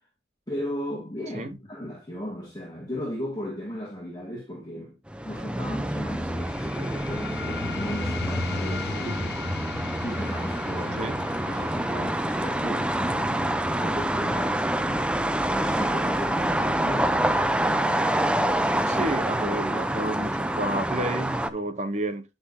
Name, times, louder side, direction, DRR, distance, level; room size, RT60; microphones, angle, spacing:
voice 1, 0.5-5.0 5.2-9.4 10.0-11.0 11.4-17.9, equal, 20° left, 2.2 m, -36 dB
sound 1, 5.1-21.5, right 1 dB, 5° right, 0.4 m, -27 dB
sound 2, 6.4-17.4, left 6 dB, 65° left, 0.4 m, -40 dB
voice 2, 18.9-22.2, right 1 dB, 40° right, 0.8 m, -30 dB
9.9 x 5.6 x 2.8 m
head